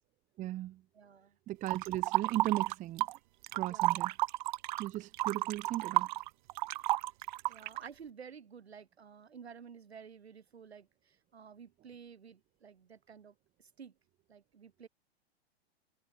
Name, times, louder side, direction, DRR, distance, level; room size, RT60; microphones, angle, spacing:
voice 1, 0.4-0.8 1.5-3.1 3.5-4.1 4.8-6.1, right 14 dB, 25° right, 0.9 m, -36 dB
voice 2, 0.9-1.4 3.6-4.1 7.4-13.9 14.3-14.9, right 6 dB, 75° right, 5.1 m, -52 dB
sound 1, 1.7-3.2 3.4-7.9, right 18 dB, 50° right, 0.7 m, -32 dB
figure-of-eight pair, 105°, 32 cm